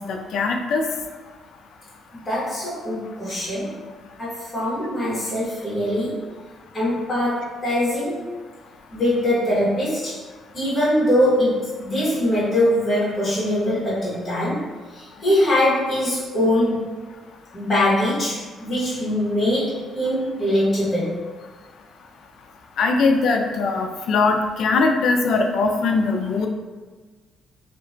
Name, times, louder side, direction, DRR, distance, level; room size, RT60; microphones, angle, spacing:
voice 1, 0.1-0.8 22.8-26.5, left 3 dB, 70° left, 4 dB, 0.3 m, -21 dB
voice 2, 2.2-3.8 4.2-6.3 6.7-8.3 8.9-10.2 10.5-14.7 14.9-16.9 17.5-21.2, left 1 dB, 30° left, -9 dB, 1.2 m, -22 dB
2.8 x 2.1 x 2.6 m, 1.3 s
cardioid pair, 90°, 0 cm